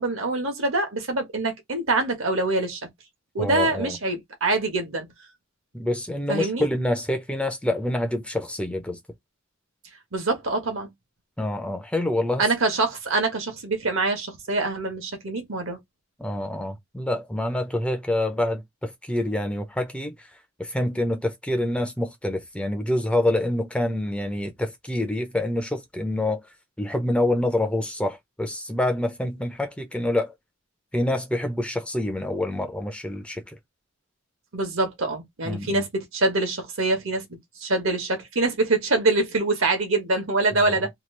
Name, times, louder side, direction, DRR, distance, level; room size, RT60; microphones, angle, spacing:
voice 1, 0.0-2.8 3.3-5.1 6.3-6.7 10.1-10.9 12.4-15.8 34.5-40.9, right 2 dB, 70° right, 1.1 m, -25 dB
voice 2, 3.4-4.0 5.7-9.0 11.4-12.5 16.2-20.1 20.6-26.4 26.8-30.3 30.9-33.4 35.4-35.8 40.7-40.8, left 1 dB, 5° left, 0.5 m, -26 dB
2.9 x 2.3 x 3.2 m
head